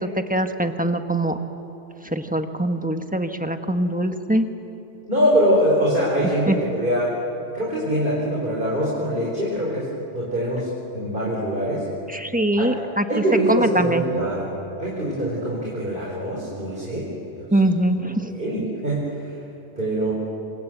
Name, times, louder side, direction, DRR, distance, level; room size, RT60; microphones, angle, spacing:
voice 1, 0.0-1.4 2.0-4.5 6.5-6.6 12.1-13.0 13.5-14.0 17.5-18.3, right 1 dB, 5° right, 6 dB, 1.2 m, -22 dB
voice 2, 5.1-7.1 7.5-9.9 10.1-11.9 12.6-12.7 13.1-14.5 14.8-17.6 18.3-19.4 19.8-20.1, equal, 45° right, -5 dB, 5.0 m, -23 dB
26.5 x 26.0 x 8.1 m, 2.9 s
omnidirectional pair, 1.2 m